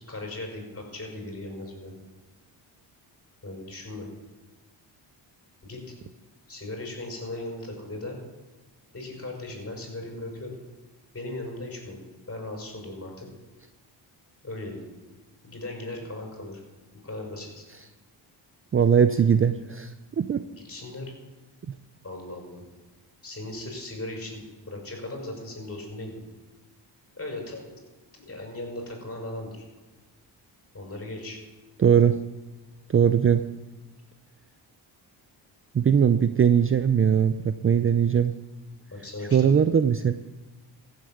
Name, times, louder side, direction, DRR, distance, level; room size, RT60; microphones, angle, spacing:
voice 1, 0.1-1.9 3.4-4.1 5.6-5.9 6.5-8.2 8.9-10.6 11.1-12.0 12.3-13.3 14.4-14.8 15.4-16.6 16.9-17.6 20.6-21.0 22.0-22.6 23.2-26.2 27.1-27.7 28.1-29.6 30.7-31.4 38.9-39.6, left 2 dB, 30° left, 1 dB, 5.9 m, -37 dB
voice 2, 18.7-20.4 21.7-21.8 31.8-32.2 32.9-33.4 35.7-38.3 39.3-40.1, right 7 dB, 30° right, 11 dB, 0.5 m, -20 dB
15.0 x 8.1 x 7.4 m, 1.2 s
cardioid pair, 70°, 45 cm